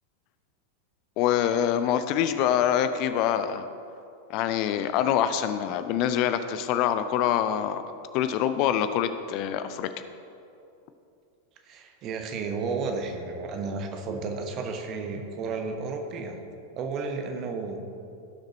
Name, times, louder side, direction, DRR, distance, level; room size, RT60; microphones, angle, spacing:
voice 1, 1.2-3.7 4.3-7.8 8.1-9.9, left 10 dB, 40° left, 10 dB, 0.4 m, -25 dB
voice 2, 11.6-16.4 16.8-17.8, right 4 dB, 35° right, 4 dB, 1.2 m, -32 dB
16.5 x 6.5 x 3.1 m, 2.6 s
figure-of-eight pair, 90°, 0 cm